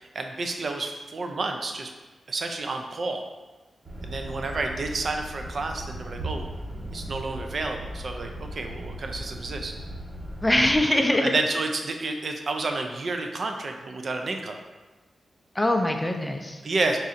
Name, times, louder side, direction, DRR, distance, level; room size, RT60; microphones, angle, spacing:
voice 1, 0.0-1.9 2.3-3.3 4.0-6.5 6.9-9.8 11.0-14.5 16.6-17.0, right 3 dB, 55° right, 4 dB, 0.4 m, -30 dB
sound 1, 3.8-10.8, right 1 dB, 40° right, 1.2 m, -37 dB
voice 2, 10.4-11.4 15.5-16.6, left 1 dB, 10° left, 4 dB, 0.4 m, -22 dB
3.9 x 2.5 x 4.1 m, 1.2 s
cardioid pair, 90°, 0 cm